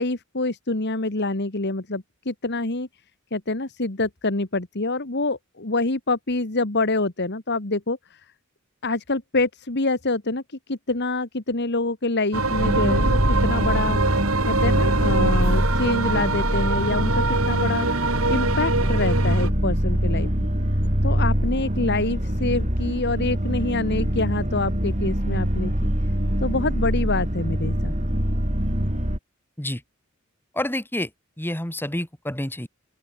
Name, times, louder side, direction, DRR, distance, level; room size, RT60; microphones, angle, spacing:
voice 1, 0.0-2.9 3.3-8.2 8.8-20.5 21.0-25.7 26.4-27.9, left 2 dB, 55° left, 2.0 m, -26 dB
sound 1, 12.3-19.5, right 2 dB, 85° right, 3.7 m, -23 dB
sound 2, 12.6-29.2, equal, 35° right, 5.2 m, -24 dB
voice 2, 30.5-31.1 31.4-32.7, left 1 dB, 10° left, 3.0 m, -28 dB
open air
head